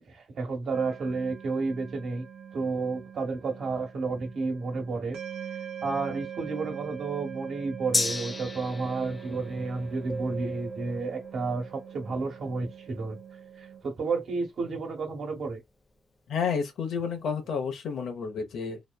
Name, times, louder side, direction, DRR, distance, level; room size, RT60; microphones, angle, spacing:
voice 1, 0.1-2.3 2.5-5.2 5.8-13.2 13.6-15.6, right 4 dB, 60° right, 1.1 m, -31 dB
sound 1, 0.7-13.8, right 8 dB, 80° right, 0.6 m, -43 dB
Gong, 7.9-15.7 16.0-16.1, left 3 dB, 30° left, 0.3 m, -37 dB
sound 2, 10.1-12.4, right 3 dB, 10° right, 0.6 m, -41 dB
voice 2, 16.3-18.8, left 6 dB, 65° left, 0.8 m, -30 dB
3.0 x 2.1 x 2.2 m
hypercardioid pair, 50°, 0 cm